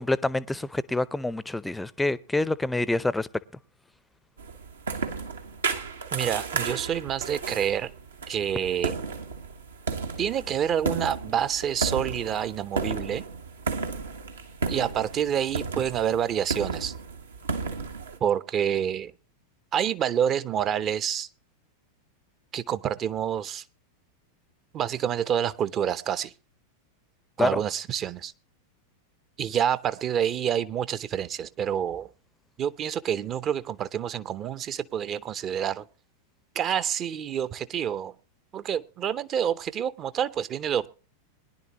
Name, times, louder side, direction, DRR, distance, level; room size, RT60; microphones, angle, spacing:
voice 1, 0.0-3.3 27.4-27.6, left 2 dB, 5° left, 0.6 m, -27 dB
sound 1, 4.4-18.2, right 4 dB, 70° right, 1.5 m, -33 dB
voice 2, 6.1-7.9 8.3-9.0 10.2-13.2 14.7-16.9 18.2-19.1 19.7-21.3 22.5-23.6 24.7-26.3 27.4-28.3 29.4-32.1 32.6-35.9 36.5-38.1 38.5-40.9, right 9 dB, 30° right, 0.7 m, -28 dB
21.5 x 11.0 x 3.0 m
figure-of-eight pair, 90°, 0 cm